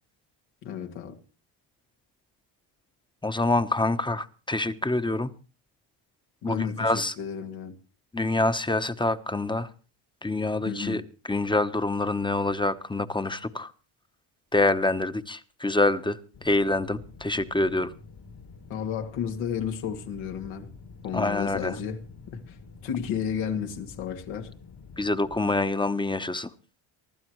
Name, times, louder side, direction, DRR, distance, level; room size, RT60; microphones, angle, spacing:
voice 1, 0.6-1.2 6.4-7.8 10.6-11.0 18.7-20.7 21.0-22.6 22.8-24.5, left 7 dB, 90° left, 2.3 m, -33 dB
voice 2, 3.2-5.3 6.4-7.1 8.1-9.7 10.2-11.0 11.3-13.7 14.5-17.9 21.1-21.7 25.0-26.5, left 2 dB, 10° left, 0.9 m, -26 dB
sound 1, 16.3-25.4, left 4 dB, 55° left, 2.1 m, -48 dB
24.5 x 12.5 x 3.1 m
cardioid pair, 95°, 47 cm